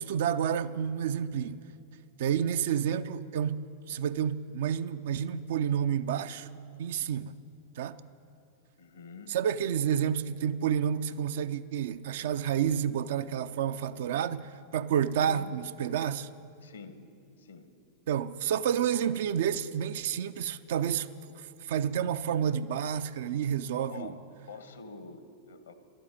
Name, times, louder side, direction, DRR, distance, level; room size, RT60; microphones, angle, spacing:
voice 1, 0.0-1.6 2.2-6.5 6.8-7.3 7.8-8.0 9.3-16.3 18.1-21.1 21.7-24.1, right 8 dB, 55° right, 0.4 m, -29 dB
voice 2, 8.8-9.4 15.1-15.5 16.6-17.0 17.4-17.7 23.9-24.2 24.5-25.7, left 4 dB, 70° left, 1.0 m, -46 dB
12.0 x 8.8 x 9.9 m
figure-of-eight pair, 90°, 0 cm